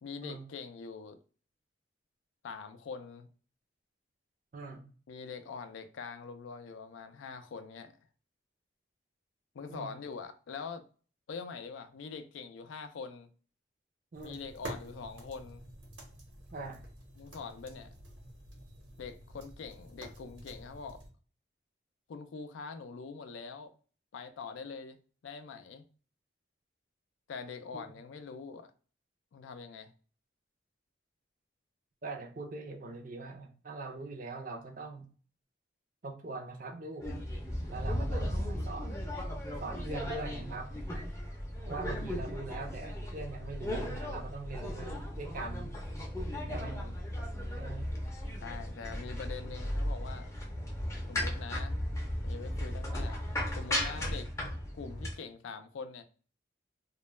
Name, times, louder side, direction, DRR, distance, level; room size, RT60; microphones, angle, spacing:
voice 1, 0.0-1.2 2.4-3.3 5.1-7.9 9.5-10.8 11.3-13.3 14.2-15.6 17.2-17.9 19.0-21.0 22.1-23.7 24.1-25.9 27.3-28.7 29.3-29.9 46.4-46.9 48.4-50.3 51.1-51.8 52.2-53.2 53.5-54.3 54.7-56.0, left 5 dB, 85° left, 0.3 m, -44 dB
voice 2, 4.5-4.8 9.7-9.9 14.1-14.4 16.5-16.8 32.0-35.1 36.0-37.1 37.7-39.0 39.6-40.7 41.7-45.7 46.5-46.8 47.6-47.9, right 3 dB, 45° right, 0.4 m, -42 dB
sound 1, 14.1-21.1, right 1 dB, 85° right, 0.9 m, -49 dB
sound 2, 37.0-55.1, equal, 15° left, 0.5 m, -36 dB
2.2 x 2.0 x 3.1 m
head